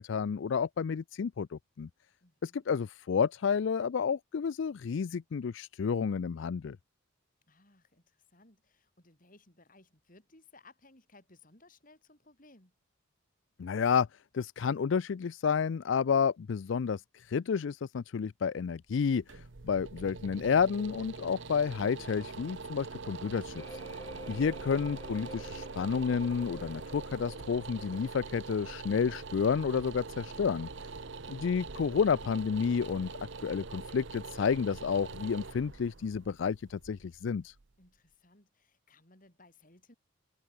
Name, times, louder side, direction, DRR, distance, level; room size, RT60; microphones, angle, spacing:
voice 1, 0.0-1.9 2.4-6.8 13.6-14.1 14.3-23.8 24.3-30.7 31.3-33.1 33.4-37.5, left 6 dB, 60° left, 0.4 m, -30 dB
voice 2, 2.2-2.7 7.5-12.7 24.1-24.5 30.8-31.2 37.8-39.9, left 2 dB, 40° left, 3.9 m, -61 dB
sound 1, 18.9-37.9, right 4 dB, 60° right, 0.9 m, -44 dB
sound 2, 23.6-32.2 32.5-33.0, left 1 dB, 15° left, 3.7 m, -53 dB
head